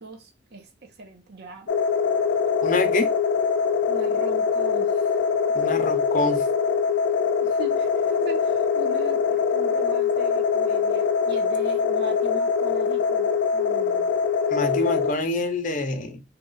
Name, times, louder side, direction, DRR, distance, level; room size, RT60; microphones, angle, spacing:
voice 1, 0.0-1.7 3.9-5.1 7.4-14.1, right 2 dB, 60° right, 0.9 m, -41 dB
sound 1, 1.7-15.1, left 6 dB, 85° left, 0.5 m, -23 dB
voice 2, 2.6-3.1 5.5-6.5 14.5-16.2, left 2 dB, 45° left, 0.7 m, -26 dB
2.9 x 2.4 x 3.8 m
head